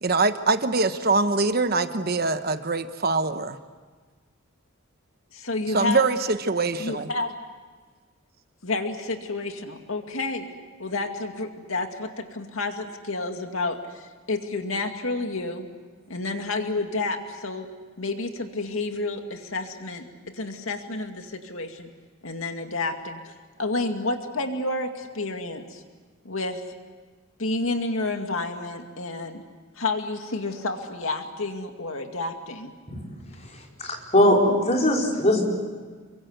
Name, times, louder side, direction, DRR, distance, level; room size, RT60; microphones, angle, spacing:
voice 1, 0.0-3.6 5.7-7.1, right 3 dB, 45° right, 9 dB, 1.1 m, -23 dB
voice 2, 5.3-6.1 6.8-7.3 8.6-10.5 10.8-15.7 16.1-17.7 18.0-20.1 20.3-21.9 22.2-23.3 23.6-25.8 26.2-26.6 27.4-29.4 29.8-32.7, left 2 dB, 75° left, 5 dB, 2.2 m, -30 dB
voice 3, 33.8-35.4, left 1 dB, 30° left, -1 dB, 5.0 m, -20 dB
29.0 x 23.5 x 8.0 m, 1.5 s
head